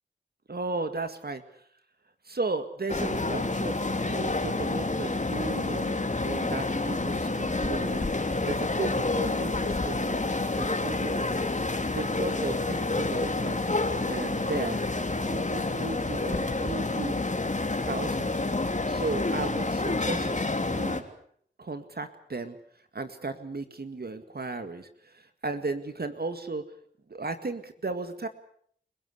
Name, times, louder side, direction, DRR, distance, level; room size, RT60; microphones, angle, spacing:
voice 1, 0.5-1.4 2.2-11.3 11.6-14.8 15.2-17.2 17.8-21.0 21.6-22.6 22.9-26.6 27.1-28.3, right 3 dB, 55° right, 9 dB, 2.1 m, -35 dB
sound 1, 2.9-21.0, left 2 dB, 40° left, 3.1 m, -28 dB
29.5 x 17.0 x 8.3 m, 0.64 s
cardioid pair, 45°, 19 cm